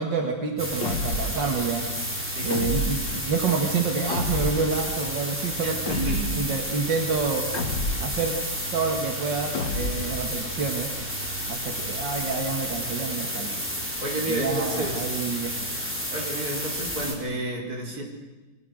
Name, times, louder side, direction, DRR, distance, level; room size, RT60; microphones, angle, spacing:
voice 1, 0.0-1.9 2.4-7.5 8.0-8.3 8.7-11.0 11.5-13.6 14.3-15.5, right 5 dB, 85° right, 3 dB, 2.6 m, -28 dB
sound 1, 0.6-17.1, equal, 5° right, 4.3 m, -31 dB
sound 2, 0.8-1.4 2.5-3.2 4.1-4.7 5.9-6.5 7.5-8.2 9.5-10.2, left 2 dB, 85° left, 2.6 m, -29 dB
voice 2, 5.6-6.5 14.0-15.1 16.1-18.0, right 1 dB, 55° right, 0 dB, 5.3 m, -31 dB
29.5 x 23.0 x 6.5 m, 1.2 s
omnidirectional pair, 1.9 m